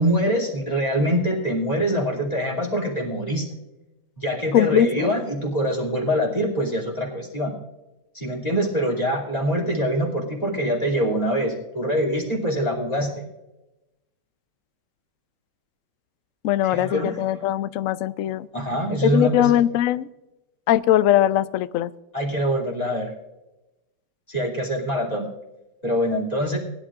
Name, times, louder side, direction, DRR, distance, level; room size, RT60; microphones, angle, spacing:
voice 1, 0.0-3.5 4.2-7.5 8.1-13.2 16.6-17.4 18.5-19.5 22.1-23.1 24.3-25.3 25.8-26.6, equal, 20° left, 0 dB, 2.8 m, -24 dB
voice 2, 4.5-5.1 16.4-18.5 19.0-20.1 20.7-21.9, left 12 dB, 90° left, 15 dB, 0.7 m, -20 dB
19.5 x 11.5 x 2.5 m, 0.97 s
omnidirectional pair, 2.0 m